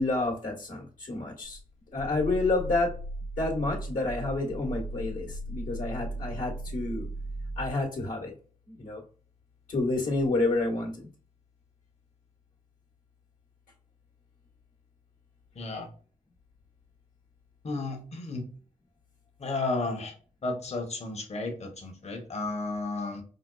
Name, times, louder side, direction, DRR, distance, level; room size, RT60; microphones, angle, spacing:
voice 1, 0.0-1.6 1.9-2.9 3.4-7.1 7.6-8.3 8.7-9.0 9.7-11.1, left 2 dB, 70° left, -3 dB, 1.4 m, -29 dB
Growling, 1.4-7.8, right 1 dB, 85° right, 1.5 m, -37 dB
voice 2, 15.5-15.9 17.6-18.4 19.4-20.1 20.4-23.2, left 3 dB, 45° left, 3 dB, 1.1 m, -33 dB
5.1 x 2.3 x 2.3 m, 0.41 s
cardioid pair, 70°, 15 cm